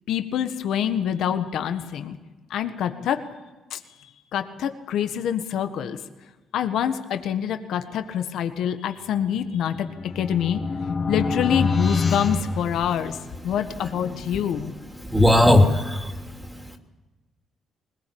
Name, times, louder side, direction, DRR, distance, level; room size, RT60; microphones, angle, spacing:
voice 1, 0.1-2.2 2.5-3.2 3.7-6.0 6.5-10.6 11.1-13.2 13.4-14.7, left 9 dB, 75° left, 8 dB, 1.5 m, -26 dB
sound 1, 9.4-13.4, left 3 dB, 35° left, 1.7 m, -27 dB
voice 2, 15.1-16.1, left 1 dB, 5° right, 4 dB, 2.8 m, -16 dB
21.0 x 20.0 x 8.7 m, 1.2 s
cardioid pair, 90°, 0 cm